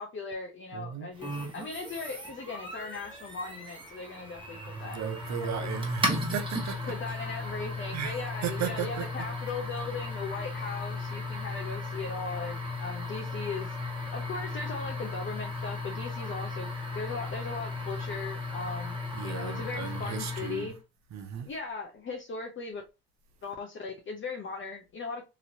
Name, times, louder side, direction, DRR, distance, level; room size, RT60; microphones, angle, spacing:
voice 1, 0.0-5.0 5.3-5.9 6.9-13.8 14.1-16.7 16.9-19.0 19.2-20.7 21.4-22.8 23.4-25.2, left 4 dB, 40° left, 0.6 m, -38 dB
voice 2, 0.7-1.1 4.8-7.0 7.9-8.1 8.4-9.1 19.1-20.7 21.1-21.5, right 9 dB, 65° right, 0.7 m, -35 dB
sound 1, 1.2-20.8, left 2 dB, 15° right, 1.3 m, -36 dB
3.0 x 2.7 x 2.6 m
cardioid pair, 90°, 30 cm